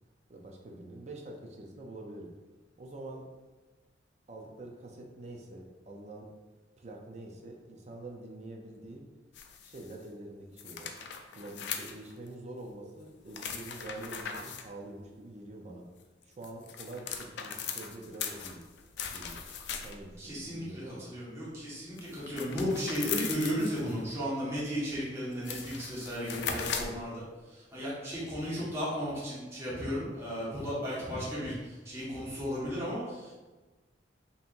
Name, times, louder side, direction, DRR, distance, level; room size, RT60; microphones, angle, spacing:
voice 1, 0.3-2.3 2.8-3.3 4.3-6.3 6.8-9.1 9.6-10.9 11.3-15.8 16.2-18.6 19.1-19.4 19.8-21.1 26.4-27.0, right 2 dB, 35° right, 0 dB, 0.5 m, -45 dB
sound 1, 9.4-10.0 10.6-12.3 13.3-14.7 16.2-20.2 22.0-24.0 24.9-25.0 25.3-27.0, left 7 dB, 65° left, 0.4 m, -39 dB
voice 2, 20.2-27.2 27.5-33.3, equal, 15° right, -9 dB, 1.3 m, -35 dB
5.4 x 2.8 x 2.5 m, 1.2 s
head